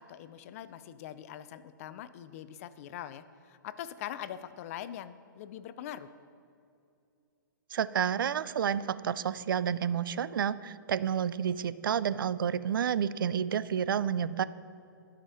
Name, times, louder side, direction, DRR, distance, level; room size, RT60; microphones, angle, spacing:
voice 1, 0.0-6.1, left 10 dB, 40° left, 14 dB, 0.4 m, -43 dB
voice 2, 7.7-14.4, right 8 dB, 75° right, 16 dB, 0.4 m, -30 dB
11.5 x 5.1 x 5.6 m, 2.6 s
hypercardioid pair, 135°, 11 cm